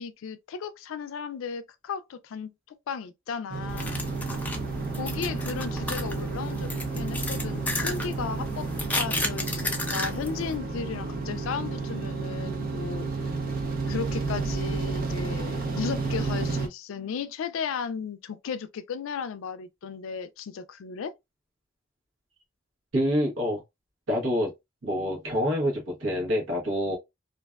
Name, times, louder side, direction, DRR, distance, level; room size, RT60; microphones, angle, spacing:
voice 1, 0.0-4.0 4.9-8.7 9.0-13.1 13.9-21.1, left 6 dB, 75° left, 0.4 m, -35 dB
sound 1, 3.5-16.7, right 4 dB, 45° right, 0.5 m, -31 dB
sound 2, 3.7-10.6, left 2 dB, 10° left, 0.4 m, -33 dB
voice 2, 22.9-23.6 24.1-24.5 24.8-27.0, equal, 75° right, 1.0 m, -26 dB
2.5 x 2.2 x 2.2 m
head